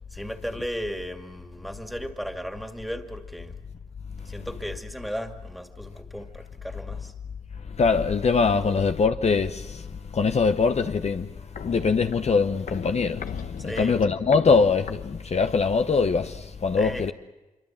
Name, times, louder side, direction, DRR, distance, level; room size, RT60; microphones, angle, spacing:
voice 1, 0.1-3.6 4.2-7.1 8.4-8.8 13.6-14.0 16.8-17.1, equal, ahead, 2.4 m, -36 dB
voice 2, 7.7-9.9 10.1-11.3 11.6-13.2 13.6-17.1, left 4 dB, 50° left, 0.8 m, -22 dB
Walk footsteps, 11.2-15.7 16.0-16.1, left 7 dB, 80° left, 1.1 m, -39 dB
25.5 x 23.5 x 7.4 m
cardioid pair, 60°, 14 cm